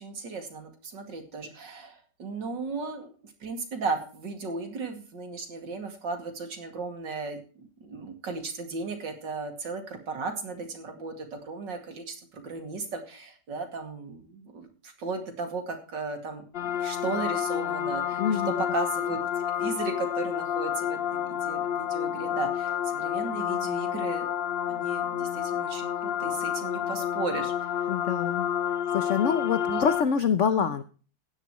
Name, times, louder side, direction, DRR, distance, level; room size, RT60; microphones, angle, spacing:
voice 1, 0.0-7.4 7.8-16.4 16.7-24.3 24.7-27.9 29.7-29.8 30.4-30.7, right 4 dB, 75° right, 5 dB, 3.1 m, -36 dB
sound 1, 16.5-30.0, left 10 dB, 90° left, 0.5 m, -29 dB
voice 2, 18.2-18.5 27.9-28.5 28.9-30.8, left 7 dB, 55° left, 12 dB, 0.8 m, -26 dB
15.5 x 11.0 x 3.1 m, 0.37 s
omnidirectional pair, 1.9 m